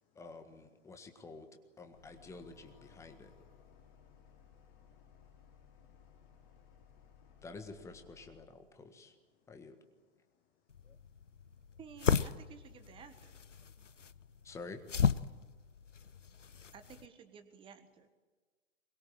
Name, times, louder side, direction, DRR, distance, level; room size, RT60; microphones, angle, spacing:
voice 1, 0.1-1.5 1.8-3.3 7.4-9.1 9.5-9.8 14.4-14.8, left 3 dB, 10° left, 7 dB, 1.6 m, -49 dB
sound 1, 1.9-8.4, left 7 dB, 40° left, 4.9 m, -60 dB
voice 2, 3.7-7.3 9.3-9.5 11.4-11.6 14.0-14.1, left 8 dB, 25° left, 7 dB, 1.6 m, -78 dB
sound 2, 10.7-17.1, left 6 dB, 80° left, 0.9 m, -35 dB
voice 3, 11.8-13.4 16.7-18.1, right 7 dB, 15° right, 10 dB, 1.5 m, -54 dB
23.0 x 21.5 x 8.9 m, 1.3 s
figure-of-eight pair, 120°, 37 cm